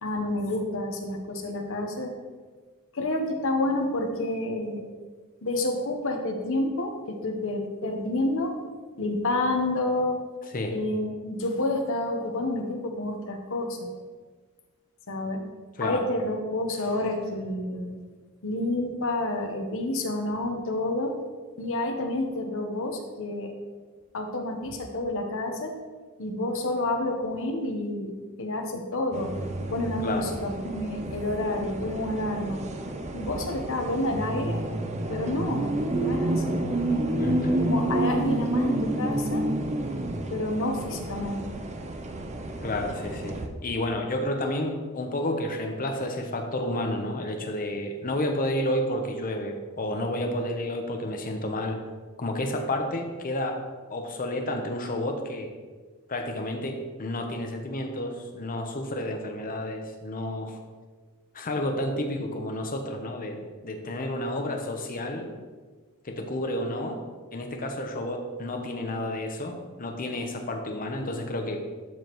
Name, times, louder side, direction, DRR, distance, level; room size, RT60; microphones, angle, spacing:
voice 1, 0.0-2.1 2.9-4.8 5.4-8.7 9.0-10.2 10.7-13.9 15.1-15.4 15.8-18.0 18.4-21.1 21.6-23.5 24.1-25.8 26.2-29.3 29.7-32.6 33.1-34.6 35.1-35.7 36.0-36.6 37.6-39.4 40.3-41.5, left 1 dB, 60° left, 3 dB, 1.0 m, -29 dB
sound 1, 29.1-43.5, right 1 dB, 30° right, 0.5 m, -29 dB
voice 2, 37.2-37.5 42.6-51.8 52.2-53.6 53.9-55.5 56.1-60.6 61.3-65.3 66.0-67.0 67.3-71.6, left 1 dB, 40° left, 4 dB, 0.9 m, -31 dB
12.0 x 5.1 x 3.1 m, 1.4 s
head